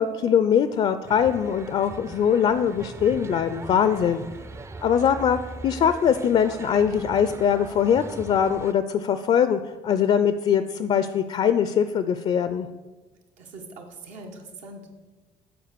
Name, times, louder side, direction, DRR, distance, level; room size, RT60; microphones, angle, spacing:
voice 1, 0.0-4.2 4.8-12.7, left 8 dB, 50° left, 11 dB, 0.4 m, -22 dB
sound 1, 1.1-8.7, right 3 dB, 20° right, 0.4 m, -40 dB
voice 2, 13.4-14.9, right 2 dB, 85° right, 2 dB, 1.3 m, -42 dB
7.7 x 4.5 x 6.6 m, 1.2 s
cardioid pair, 105°, 13 cm